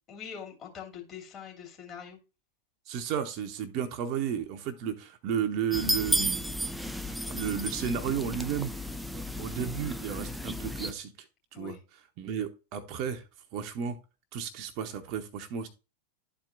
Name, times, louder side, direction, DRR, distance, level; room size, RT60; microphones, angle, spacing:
voice 1, 0.1-2.2 11.5-11.8, left 8 dB, 30° left, 0 dB, 2.7 m, -43 dB
voice 2, 2.9-6.6 7.3-8.8 9.1-11.1 11.5-11.8 12.2-13.2 13.5-14.0 14.3-15.7, right 8 dB, 40° right, 6 dB, 0.9 m, -33 dB
sound 1, 5.7-10.9, equal, ahead, 0.5 m, -33 dB
12.0 x 4.5 x 2.5 m, 0.30 s
figure-of-eight pair, 90°, 0 cm